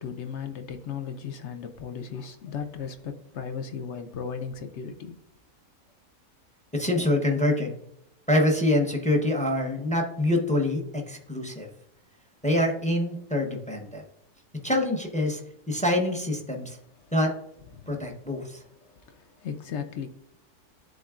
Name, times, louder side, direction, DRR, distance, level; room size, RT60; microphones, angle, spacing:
voice 1, 0.0-5.2 17.0-17.1 17.7-18.1 18.8-20.1, left 7 dB, 65° left, 0.7 m, -36 dB
voice 2, 6.7-7.7 8.3-11.7 12.4-14.0 14.6-15.4 15.7-16.8 17.1-17.3 17.9-18.6, left 1 dB, 10° left, 0.5 m, -25 dB
10.5 x 3.8 x 2.4 m
omnidirectional pair, 1.6 m